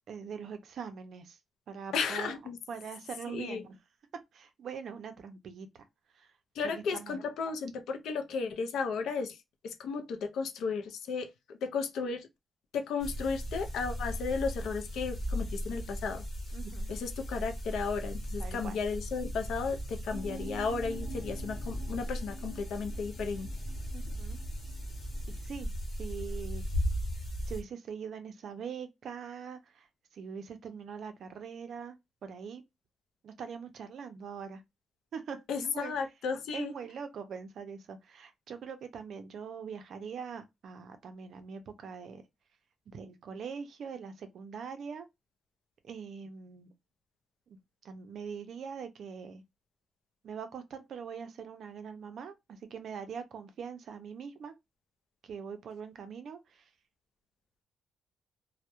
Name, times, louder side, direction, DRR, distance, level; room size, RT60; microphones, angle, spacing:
voice 1, 0.1-1.4 1.7-2.3 2.7-3.7 4.3-5.7 6.1-6.3 6.6-7.2 16.5-17.0 18.4-18.7 23.9-24.4 25.3-25.7 26.0-26.6 27.5-29.9 30.1-32.6 33.2-34.6 35.1-35.9 36.5-42.2 42.9-45.1 45.8-46.7 47.5-47.6 47.8-49.4 50.2-54.5 55.2-56.6, right 6 dB, 55° right, 0.4 m, -42 dB
voice 2, 1.9-2.6 3.3-3.6 6.5-9.4 9.6-12.3 12.7-16.2 16.9-23.6 35.5-36.7, left 5 dB, 85° left, 0.4 m, -34 dB
sound 1, 13.0-27.6, equal, 40° left, 0.9 m, -37 dB
sound 2, 20.1-25.5, right 4 dB, 10° left, 0.7 m, -49 dB
2.1 x 2.0 x 2.9 m
wide cardioid pair, 175°, 0 cm